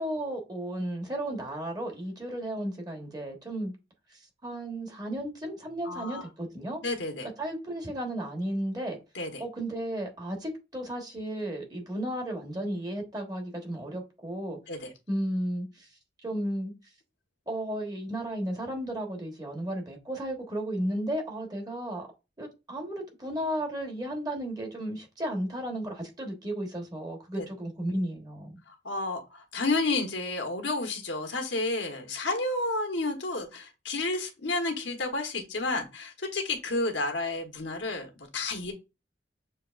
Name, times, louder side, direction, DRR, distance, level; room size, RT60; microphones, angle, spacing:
voice 1, 0.0-3.7 4.4-6.8 7.4-9.0 9.4-14.6 15.1-15.9 16.2-16.7 17.5-22.0 22.4-28.6, right 1 dB, 20° right, 1.2 m, -34 dB
voice 2, 5.8-6.3 6.8-7.3 9.1-9.4 14.7-14.9 27.4-27.5 28.7-38.7, left 2 dB, 85° left, 1.2 m, -31 dB
6.6 x 2.9 x 2.4 m
head